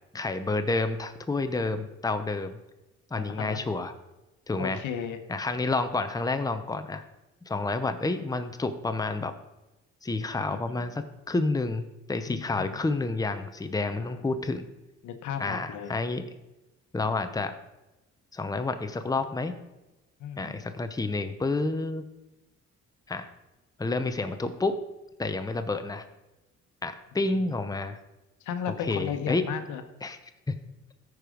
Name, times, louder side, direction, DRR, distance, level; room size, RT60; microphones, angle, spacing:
voice 1, 0.1-2.6 3.1-3.9 4.5-4.8 5.3-7.0 7.5-9.3 10.0-14.7 15.4-16.2 16.9-17.5 18.3-19.6 20.4-22.0 23.1-23.3 23.8-24.7 25.2-26.0 26.8-28.0 28.9-29.5 30.0-30.2 30.5-30.6, left 3 dB, 10° left, 9 dB, 0.8 m, -29 dB
voice 2, 3.1-3.6 4.6-5.2 10.5-10.9 12.3-12.8 14.0-14.2 15.0-16.0 20.2-20.7 28.4-29.8, left 8 dB, 85° left, 8 dB, 1.0 m, -35 dB
13.5 x 4.8 x 5.1 m, 0.99 s
cardioid pair, 90°, 30 cm